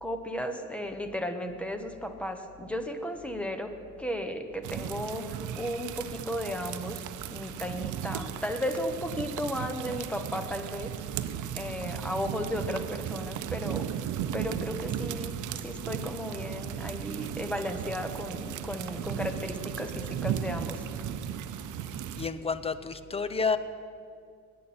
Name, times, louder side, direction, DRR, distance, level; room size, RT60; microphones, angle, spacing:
voice 1, 0.0-10.9 11.5-21.1, equal, 5° left, 6 dB, 1.2 m, -35 dB
sound 1, 4.6-22.3, right 9 dB, 80° right, 0.7 m, -36 dB
voice 2, 22.2-23.6, left 5 dB, 20° left, 12 dB, 0.7 m, -30 dB
20.0 x 9.4 x 4.4 m, 2.3 s
cardioid pair, 90°, 30 cm